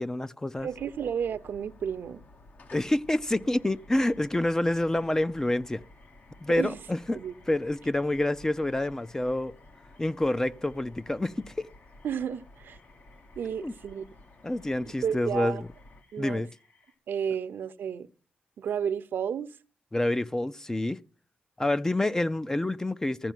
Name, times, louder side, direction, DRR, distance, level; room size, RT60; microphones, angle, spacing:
voice 1, 0.0-0.7 2.7-5.8 6.4-7.2 7.5-9.5 10.0-11.7 13.6-13.7 14.4-15.7 16.2-16.5 19.9-21.0 21.6-23.3, left 1 dB, 15° left, 0.5 m, -28 dB
sound 1, 0.6-16.0, left 2 dB, 55° left, 1.2 m, -54 dB
voice 2, 0.6-2.2 6.6-6.8 7.1-7.3 12.0-12.8 13.4-14.0 15.0-15.6 16.1-16.5 17.1-18.1 18.6-19.5, right 8 dB, 75° right, 0.7 m, -32 dB
sound 2, 3.4-16.9, left 3 dB, 75° left, 6.3 m, -65 dB
14.5 x 5.0 x 9.2 m
cardioid pair, 100°, 3 cm